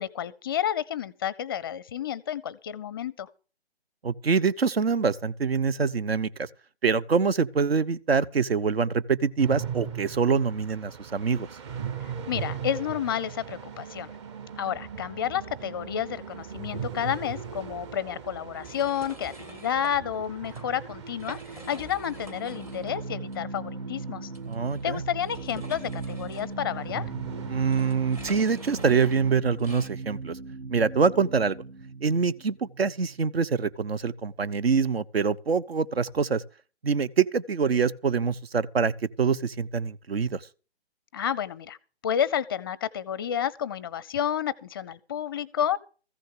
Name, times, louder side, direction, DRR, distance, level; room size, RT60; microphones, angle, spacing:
voice 1, 0.0-3.3 12.3-14.1 14.6-21.4 21.7-24.3 24.8-27.0 41.1-41.8 42.0-45.8, left 9 dB, 20° left, 0.5 m, -30 dB
voice 2, 4.0-6.5 6.8-11.5 24.5-25.0 27.5-30.4 30.7-31.6 32.0-36.4 36.8-38.9 39.2-40.5, right 5 dB, 65° right, 1.1 m, -25 dB
sound 1, 9.4-29.3, right 7 dB, 25° right, 1.2 m, -40 dB
sound 2, 18.5-19.9 20.4-20.6 21.1-23.0 23.3-23.4 24.3-29.9, right 1 dB, 10° right, 0.8 m, -46 dB
sound 3, 20.6-33.7, right 3 dB, 80° right, 1.7 m, -39 dB
15.0 x 6.4 x 8.1 m
figure-of-eight pair, 140°, 32 cm